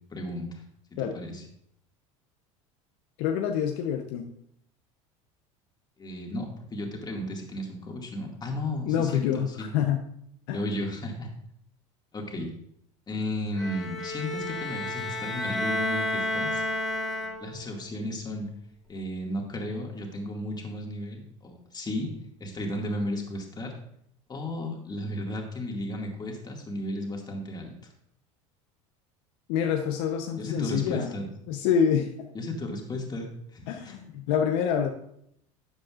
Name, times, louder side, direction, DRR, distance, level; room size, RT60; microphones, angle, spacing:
voice 1, 0.1-0.6 1.1-1.4 6.0-9.7 10.5-11.3 12.1-12.5 13.1-16.6 17.4-18.5 18.9-22.1 22.4-23.8 24.3-27.7 30.4-31.3 32.3-34.0, left 1 dB, 25° left, 1 dB, 2.2 m, -34 dB
voice 2, 3.2-4.3 8.8-10.1 10.5-10.6 29.5-31.1 31.5-32.1 33.7-34.9, left 8 dB, 70° left, 4 dB, 0.9 m, -26 dB
Bowed string instrument, 13.6-17.7, left 1 dB, ahead, 1.6 m, -31 dB
12.0 x 7.5 x 2.5 m, 0.72 s
hypercardioid pair, 90°, 16 cm